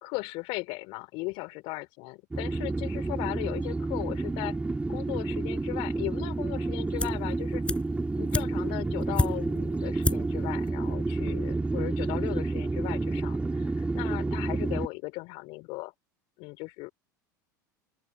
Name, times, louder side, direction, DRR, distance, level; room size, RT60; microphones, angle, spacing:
voice 1, 0.0-4.6 4.9-7.6 8.1-15.9 16.4-16.9, left 25 dB, 60° left, 4.3 m, -37 dB
sound 1, 2.3-14.9, right 3 dB, 10° right, 3.0 m, -30 dB
sound 2, 7.0-7.3 7.6-9.6 10.0-10.4 10.7-10.8, left 2 dB, 10° left, 6.5 m, -30 dB
open air
hypercardioid pair, 80°, 10 cm